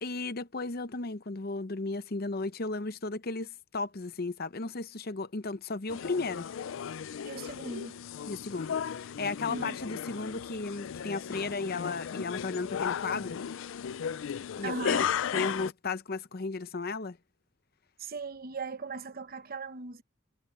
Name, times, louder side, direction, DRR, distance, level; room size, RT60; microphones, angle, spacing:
voice 1, 0.0-6.5 8.3-13.4 14.5-15.0 15.3-17.2, left 3 dB, 45° left, 0.8 m, -35 dB
sound 1, 5.9-15.7, left 8 dB, 65° left, 0.4 m, -35 dB
voice 2, 7.2-8.0 9.5-9.8 14.6-15.1 18.0-20.0, right 4 dB, 45° right, 0.9 m, -38 dB
head